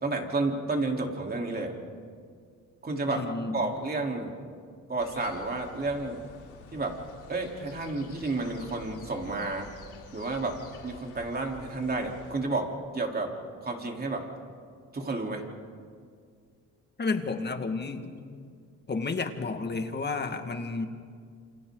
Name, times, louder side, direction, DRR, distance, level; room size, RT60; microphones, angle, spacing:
voice 1, 0.0-1.7 2.8-3.2 3.5-4.3 4.9-6.2 6.7-7.0 7.3-9.7 10.1-10.6 10.8-13.3 13.6-14.3 14.9-15.4, right 3 dB, 30° right, 1 dB, 3.8 m, -31 dB
voice 2, 3.1-3.7 17.0-18.5 18.9-20.9, left 4 dB, 35° left, 6 dB, 2.0 m, -32 dB
sound 1, 5.0-12.3, left 5 dB, 90° left, 3.1 m, -50 dB
28.5 x 28.0 x 4.0 m, 2.1 s
cardioid pair, 90°, 30 cm